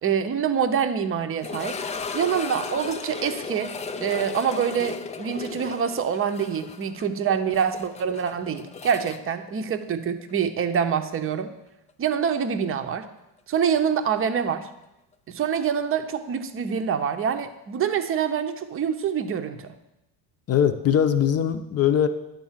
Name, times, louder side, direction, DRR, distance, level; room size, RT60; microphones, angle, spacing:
voice 1, 0.0-1.8 2.1-3.7 4.0-11.5 12.0-13.0 13.5-14.7 15.3-19.7, right 7 dB, 30° right, 8 dB, 0.8 m, -25 dB
sound 1, 1.4-10.3 10.6-10.7 11.3-11.4 14.0-14.1, left 4 dB, 15° left, 0.4 m, -35 dB
voice 2, 20.5-22.1, left 9 dB, 35° left, 9 dB, 0.7 m, -21 dB
10.5 x 3.9 x 7.3 m, 0.90 s
supercardioid pair, 115°, 45 cm